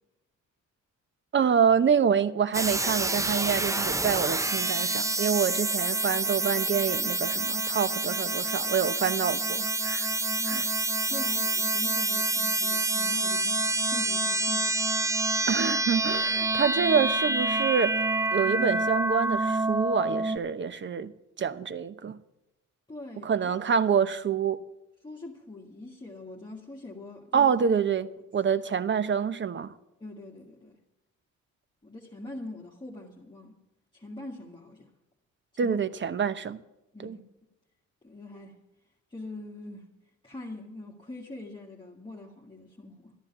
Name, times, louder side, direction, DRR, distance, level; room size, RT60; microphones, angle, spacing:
voice 1, 1.3-10.1 10.5-10.6 15.5-18.0 18.3-21.1 21.4-22.2 23.2-24.6 27.3-29.7 35.6-36.6 37.0-37.2, right 7 dB, 40° right, 0.8 m, -26 dB
sound 1, 2.5-20.4, right 2 dB, 10° right, 0.5 m, -27 dB
voice 2, 10.2-10.7 11.1-14.7 22.9-23.4 25.0-27.5 30.0-30.8 31.8-33.6 33.9-34.9 35.5-35.8 36.9-37.2 38.0-38.6 39.1-39.9 40.2-43.2, left 2 dB, 15° left, 1.8 m, -43 dB
13.0 x 10.5 x 7.2 m
cardioid pair, 90°, 30 cm